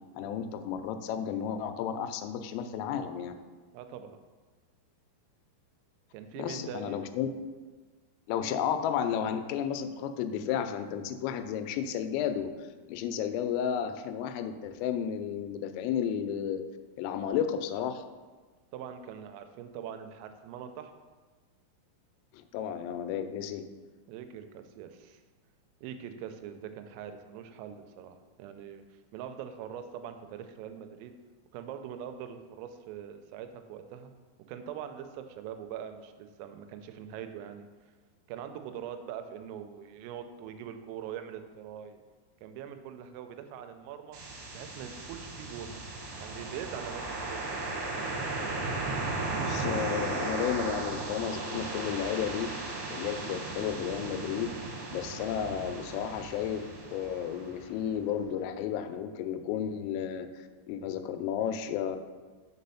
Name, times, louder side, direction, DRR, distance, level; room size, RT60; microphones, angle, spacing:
voice 1, 0.1-3.3 6.4-7.3 8.3-12.5 12.9-16.6 17.0-18.0 22.3-23.6 49.4-52.6 52.9-54.6 54.9-62.0, left 8 dB, 85° left, 9 dB, 3.2 m, -33 dB
voice 2, 3.7-4.2 6.1-7.0 18.7-20.9 24.1-25.2 25.8-28.8 29.1-31.1 31.5-34.1 34.5-37.7 38.3-42.0 42.4-44.2 44.5-45.8 46.2-47.4, right 9 dB, 90° right, 8 dB, 3.2 m, -42 dB
sound 1, 44.1-58.0, right 2 dB, 70° right, 3.0 m, -36 dB
6.7 x 4.2 x 5.5 m, 1.3 s
omnidirectional pair, 5.8 m